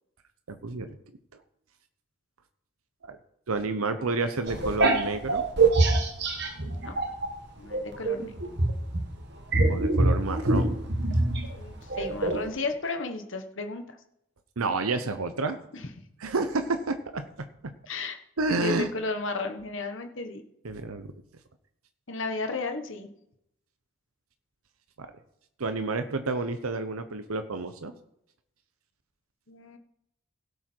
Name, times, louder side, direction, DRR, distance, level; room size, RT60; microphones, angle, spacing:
voice 1, 0.5-1.0 3.0-3.2 3.5-5.4 9.7-10.8 14.6-15.6 16.2-17.7 18.4-18.9 20.6-21.1 25.0-25.1 25.6-27.9, right 3 dB, 85° right, 9 dB, 0.9 m, -30 dB
sound 1, 4.5-7.3 7.7-12.5, right 2 dB, 50° right, 1.6 m, -25 dB
voice 2, 7.6-8.3 11.6-13.8 15.7-15.8 17.9-18.1 18.6-20.4 22.1-23.1 29.5-29.8, left 3 dB, 60° left, 6 dB, 1.4 m, -33 dB
16.5 x 7.0 x 4.6 m, 0.79 s
head